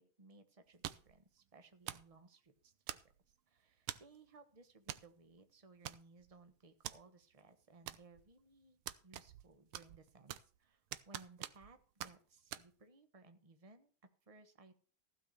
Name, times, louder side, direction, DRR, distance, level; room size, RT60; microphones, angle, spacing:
voice 1, 0.0-3.0 3.5-13.9 14.3-14.7, right 3 dB, 20° right, 9 dB, 1.0 m, -62 dB
sound 1, 0.8-1.2 1.9-2.1 2.9-3.3 3.9-4.2 4.9-5.1 5.3-5.4 5.8-6.3 6.8-7.0 7.9-8.3 8.9-9.5 9.7-10.6 10.9-11.7 12.0-12.1 12.5-12.6, right 13 dB, 80° right, 1.6 m, -46 dB
15.5 x 5.8 x 6.7 m, 0.39 s
omnidirectional pair, 2.3 m